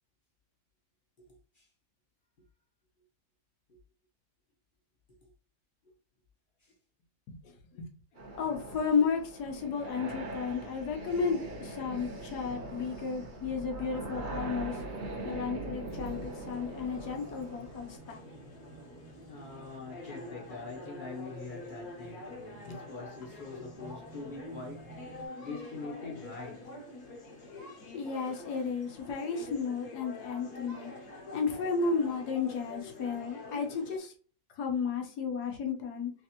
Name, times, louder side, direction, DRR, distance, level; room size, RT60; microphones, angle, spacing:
voice 1, 1.2-1.7 3.7-3.8 5.2-5.3 5.8-5.9 6.6-6.7 19.3-26.8, left 4 dB, 40° left, 0.8 m, -44 dB
voice 2, 7.3-7.9 8.4-14.8 15.2-18.2 22.7-22.8 27.9-30.9 31.3-34.1 34.6-36.1, left 5 dB, 80° left, 1.4 m, -33 dB
sound 1, 8.2-18.0, right 2 dB, 45° right, 0.7 m, -41 dB
sound 2, 13.4-25.3, right 3 dB, 75° right, 0.3 m, -53 dB
sound 3, 15.9-34.0, left 2 dB, 65° left, 1.4 m, -47 dB
3.4 x 3.2 x 2.9 m
omnidirectional pair, 1.7 m